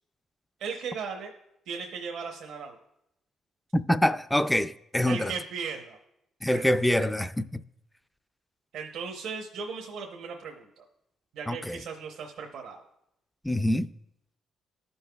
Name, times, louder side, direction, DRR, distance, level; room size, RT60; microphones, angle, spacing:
voice 1, 0.6-1.3 1.7-2.8 5.1-6.0 6.5-6.8 8.7-10.8 11.3-12.8, right 5 dB, 80° right, 0.8 m, -37 dB
voice 2, 3.7-5.3 6.4-7.6 11.5-11.8 13.4-13.9, left 1 dB, 5° left, 0.3 m, -25 dB
14.5 x 5.5 x 2.3 m
cardioid pair, 90°, 0 cm